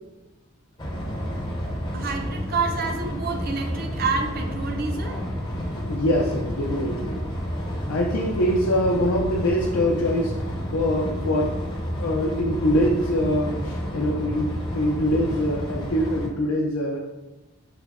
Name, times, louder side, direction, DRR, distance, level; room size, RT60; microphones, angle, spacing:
sound 1, 0.8-16.3, equal, 20° left, 0.5 m, -30 dB
voice 1, 1.9-5.2, right 4 dB, 45° right, 4 dB, 0.5 m, -28 dB
voice 2, 5.9-7.2 7.9-10.4 10.7-11.5 12.0-17.0, equal, 85° left, -2 dB, 0.5 m, -24 dB
4.9 x 2.2 x 3.5 m, 1.0 s
head